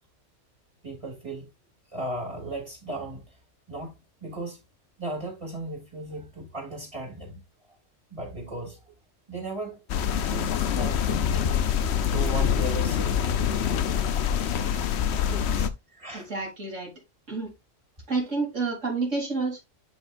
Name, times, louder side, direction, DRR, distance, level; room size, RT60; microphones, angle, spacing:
voice 1, 0.8-1.5 1.9-3.4 3.7-4.6 5.0-7.4 7.7-7.8 8.1-8.8 9.3-9.8 10.2-13.3 13.6-14.2 14.6-15.0 15.2-15.3 15.9-16.3, right 2 dB, 25° right, 3.0 m, -37 dB
sound 1, 9.9-15.7, left 8 dB, 65° left, 0.9 m, -25 dB
voice 2, 15.3-15.7 16.1-16.9 17.3-17.5 18.1-19.6, right 3 dB, 75° right, 3.6 m, -30 dB
10.5 x 5.0 x 2.5 m
omnidirectional pair, 1.3 m